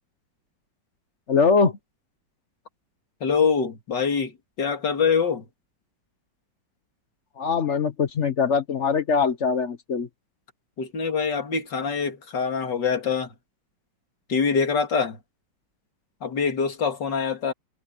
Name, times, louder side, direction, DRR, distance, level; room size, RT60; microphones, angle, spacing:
voice 1, 1.3-1.8 7.4-10.1, left 5 dB, 45° left, 1.1 m, -22 dB
voice 2, 3.2-4.3 4.6-5.4 10.8-13.3 14.3-15.2 16.2-17.5, left 5 dB, 65° left, 3.0 m, -24 dB
omnidirectional pair, 2.0 m